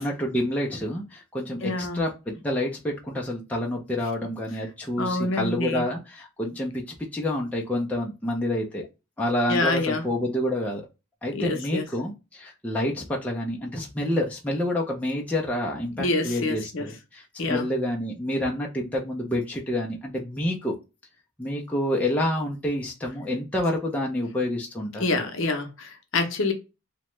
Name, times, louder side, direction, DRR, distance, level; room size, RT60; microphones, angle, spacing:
voice 1, 0.0-8.8 9.2-10.8 11.2-20.8 21.4-25.2, left 1 dB, 5° left, 0.4 m, -28 dB
voice 2, 1.6-2.0 5.0-5.8 9.5-10.0 11.3-11.9 16.0-16.9 17.4-17.7 25.0-26.5, left 2 dB, 60° left, 0.6 m, -26 dB
2.8 x 2.1 x 3.0 m
head